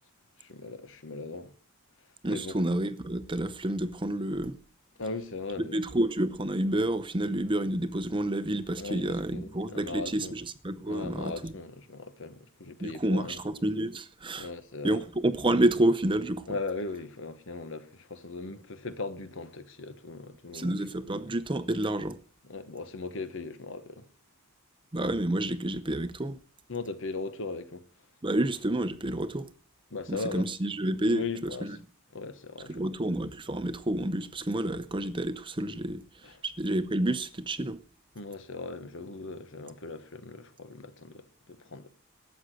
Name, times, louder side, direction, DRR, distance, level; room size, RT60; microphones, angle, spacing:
voice 1, 0.4-1.6 2.3-2.6 5.0-5.8 8.8-10.4 10.9-13.4 14.4-15.0 16.5-20.8 22.4-24.0 26.7-27.8 29.9-30.5 31.1-31.8 32.1-32.8 36.2-36.4 38.1-41.9, left 3 dB, 60° left, 1.3 m, -38 dB
voice 2, 2.2-4.6 5.6-11.5 12.8-14.5 14.8-16.4 20.5-22.2 24.9-26.4 28.2-29.5 30.1-31.8 32.7-36.0 36.4-37.8, right 1 dB, 20° right, 0.7 m, -29 dB
13.0 x 8.2 x 7.7 m
head